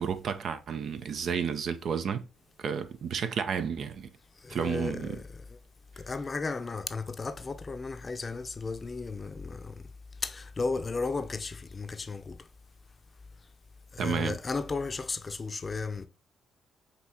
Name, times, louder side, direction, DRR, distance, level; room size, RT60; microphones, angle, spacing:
voice 1, 0.0-2.3 2.6-4.1 4.5-5.2 14.0-14.4, right 7 dB, 65° right, 0.5 m, -31 dB
voice 2, 4.4-5.6 6.0-9.9 10.2-12.4 13.9-16.1, left 4 dB, 35° left, 0.5 m, -34 dB
5.4 x 2.8 x 2.8 m
supercardioid pair, 70°, 0 cm